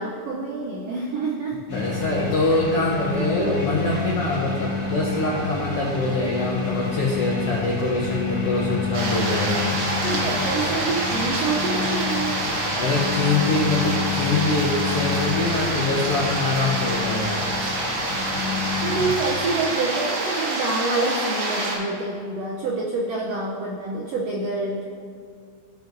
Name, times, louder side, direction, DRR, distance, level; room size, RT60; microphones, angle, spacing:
voice 1, 0.0-1.6 2.8-2.9 3.4-3.5 3.9-4.0 10.0-12.4 18.8-24.8, right 3 dB, 85° right, -2 dB, 1.4 m, -27 dB
voice 2, 1.7-9.7 12.7-17.4, left 2 dB, 80° left, -3 dB, 1.3 m, -24 dB
sound 1, 1.7-19.1, left 5 dB, 45° left, 2.8 m, -29 dB
sound 2, 8.9-21.8, right 1 dB, 60° right, 1.9 m, -27 dB
15.5 x 5.2 x 2.6 m, 2.2 s
omnidirectional pair, 3.8 m